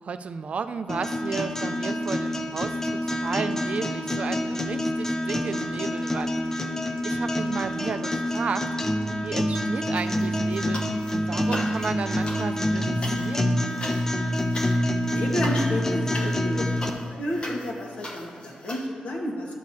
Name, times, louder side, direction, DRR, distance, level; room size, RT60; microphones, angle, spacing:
voice 1, 0.0-6.6 7.0-8.7 9.2-10.8 11.1-13.6, right 5 dB, 50° right, 10 dB, 0.3 m, -33 dB
sound 1, 0.9-16.9, left 1 dB, 15° left, 0.5 m, -27 dB
sound 2, 9.9-11.1 11.4-18.9, left 1 dB, 35° left, 1.0 m, -39 dB
voice 2, 15.1-16.7 17.2-19.5, left 1 dB, 65° left, -1 dB, 1.4 m, -30 dB
11.5 x 6.4 x 2.7 m, 2.3 s
cardioid pair, 95°, 3 cm